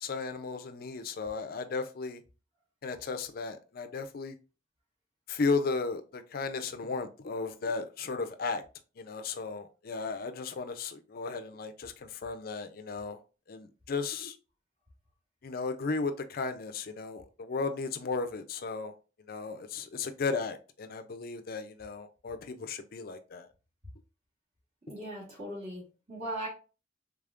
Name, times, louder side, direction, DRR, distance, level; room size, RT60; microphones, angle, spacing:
voice 1, 0.0-2.2 2.8-4.4 5.3-8.6 9.0-13.2 13.5-14.4 15.4-18.9 19.3-23.5, left 4 dB, 50° left, 0.5 m, -35 dB
voice 2, 24.9-26.5, right 1 dB, 35° right, 1.7 m, -39 dB
3.5 x 3.4 x 2.4 m
head